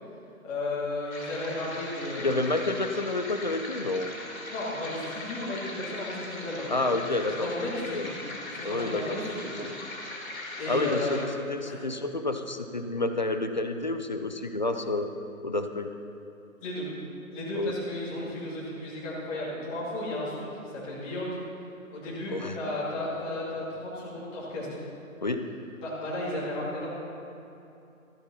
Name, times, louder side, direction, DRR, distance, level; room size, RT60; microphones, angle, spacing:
voice 1, 0.4-2.3 4.5-6.7 7.2-8.1 8.5-9.8 10.5-11.3 11.6-11.8 16.6-16.9 17.3-21.4 21.9-24.8 25.8-26.9, left 1 dB, 20° left, -7 dB, 2.3 m, -34 dB
sound 1, 1.1-11.2, left 2 dB, 75° left, 2.7 m, -40 dB
voice 2, 2.2-4.1 6.7-7.5 7.9-8.1 8.6-9.2 9.6-9.8 10.7-11.2 11.5-15.1 15.4-15.9 17.5-17.7 22.3-22.6 25.2-25.5, left 2 dB, 35° left, 7 dB, 0.4 m, -29 dB
13.5 x 7.8 x 5.6 m, 2.8 s
figure-of-eight pair, 140°, 42 cm